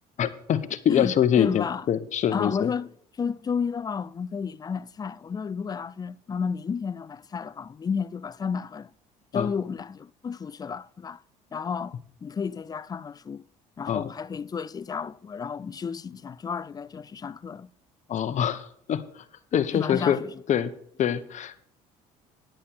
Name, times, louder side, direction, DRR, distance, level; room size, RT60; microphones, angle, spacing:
voice 1, 0.2-2.7 9.3-9.5 13.9-14.1 18.1-19.0 19.5-20.2 20.5-20.7 21.0-21.6, left 9 dB, 50° left, 0.9 m, -24 dB
voice 2, 0.9-1.8 2.3-8.9 9.3-11.2 11.5-13.4 13.8-17.7 19.7-20.4, left 6 dB, 25° left, 0.4 m, -32 dB
10.0 x 8.8 x 4.4 m
supercardioid pair, 85°, 16 cm